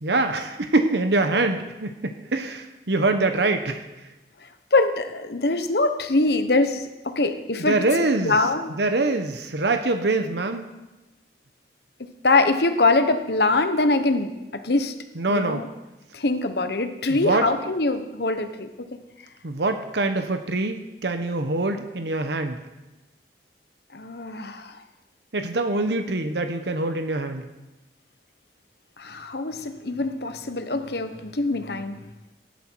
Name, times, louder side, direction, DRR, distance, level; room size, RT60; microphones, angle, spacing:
voice 1, 0.0-3.9 7.6-8.4 8.8-10.7 15.2-15.6 17.1-17.5 19.4-22.6 25.3-27.5, right 2 dB, 75° right, 7 dB, 1.0 m, -24 dB
voice 2, 4.7-7.8 8.2-8.7 12.0-14.9 15.3-15.7 16.1-18.9 23.9-24.8 29.0-32.1, left 2 dB, 65° left, 8 dB, 1.1 m, -23 dB
16.0 x 11.5 x 4.6 m, 1.0 s
head